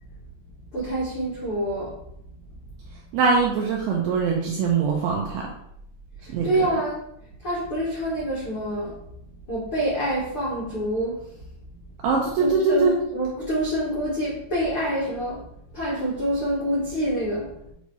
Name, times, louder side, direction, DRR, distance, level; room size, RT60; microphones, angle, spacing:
voice 1, 0.7-2.0 6.2-7.0 7.4-9.0 9.5-11.2 11.6-11.7 12.4-15.5 15.7-17.7, right 1 dB, 70° left, -7 dB, 1.3 m, -27 dB
voice 2, 3.1-5.5 6.3-6.7 12.0-13.0, right 4 dB, 80° right, -1 dB, 2.3 m, -22 dB
8.3 x 2.8 x 4.7 m, 0.74 s
omnidirectional pair, 5.4 m